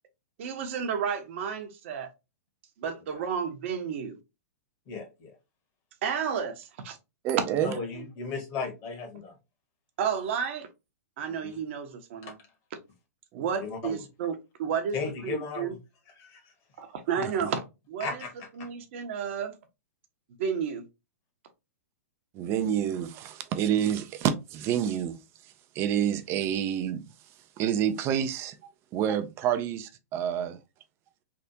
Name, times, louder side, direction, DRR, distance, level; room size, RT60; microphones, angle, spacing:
voice 1, 0.4-2.1 2.8-4.2 6.0-7.0 7.7-8.0 10.0-10.7 11.2-12.4 13.4-15.7 16.8-18.2 18.6-19.5 20.4-20.8, right 7 dB, 55° right, 0.8 m, -32 dB
voice 2, 4.9-5.3 7.6-9.3 11.4-11.5 12.2-12.3 13.6-14.0 14.9-15.8 16.2-16.4 18.0-18.7, left 4 dB, 35° left, 1.3 m, -36 dB
voice 3, 7.2-7.7 13.3-13.4 17.2-17.3 22.3-25.2 25.7-27.0 27.6-28.6 28.9-30.6, right 9 dB, 30° right, 0.4 m, -28 dB
3.4 x 2.4 x 2.7 m
hypercardioid pair, 110°, 8 cm